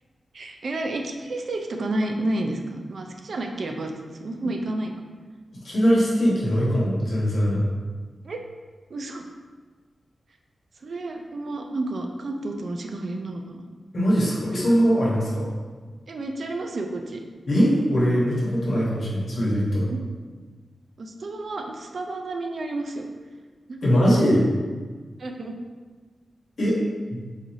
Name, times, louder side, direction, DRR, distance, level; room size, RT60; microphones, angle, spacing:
voice 1, 0.3-3.9 4.2-4.9 8.2-8.4 8.9-9.2 10.8-13.6 16.1-17.2 19.9-20.0 21.0-23.1 23.7-24.3 25.2-25.6, right 2 dB, 55° right, 3 dB, 0.3 m, -30 dB
voice 2, 5.6-7.6 13.9-15.5 17.5-19.9 23.8-24.4 26.6-26.8, equal, 60° left, -6 dB, 1.1 m, -21 dB
3.9 x 2.6 x 3.0 m, 1.4 s
wide cardioid pair, 170°, 0 cm